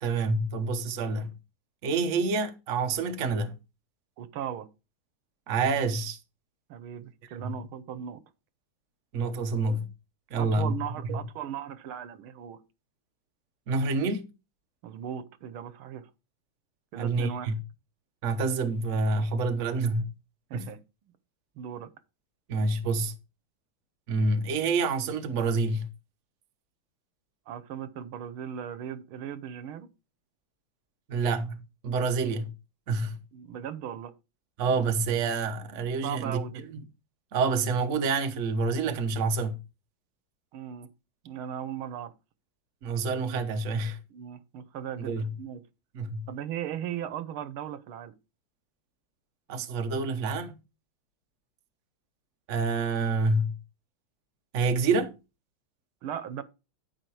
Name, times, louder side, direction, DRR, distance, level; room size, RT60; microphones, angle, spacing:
voice 1, 0.0-1.3 1.8-3.6 5.5-6.2 7.3-7.5 9.1-9.9 10.3-10.7 11.1-11.2 13.7-14.2 16.9-17.6 18.2-20.1 20.5-20.7 22.5-23.1 24.1-25.9 31.1-32.5 32.9-33.2 34.6-36.8 37.3-39.6 42.8-44.0 45.0-45.3 45.9-46.3 49.5-50.5 52.5-53.6 54.5-55.1, right 3 dB, 50° right, 1.0 m, -27 dB
voice 2, 4.2-4.7 6.7-8.2 10.4-12.6 14.8-16.1 16.9-17.5 20.5-20.8 21.6-21.9 27.5-29.9 33.3-34.1 36.0-36.6 40.5-40.9 41.2-42.1 44.1-45.6 46.3-48.1 56.0-56.4, right 9 dB, 85° right, 1.7 m, -37 dB
12.0 x 4.8 x 4.7 m
omnidirectional pair, 2.3 m